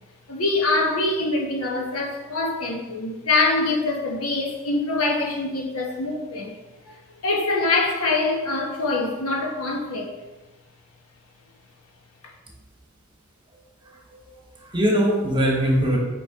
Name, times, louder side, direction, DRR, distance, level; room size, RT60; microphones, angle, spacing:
voice 1, 0.3-6.6 6.9-10.1 12.2-12.3, left 2 dB, 85° left, 0 dB, 1.2 m, -24 dB
voice 2, 13.8-14.3 14.6-16.0, equal, 25° right, -1 dB, 1.2 m, -22 dB
5.7 x 5.3 x 3.6 m, 1.2 s
head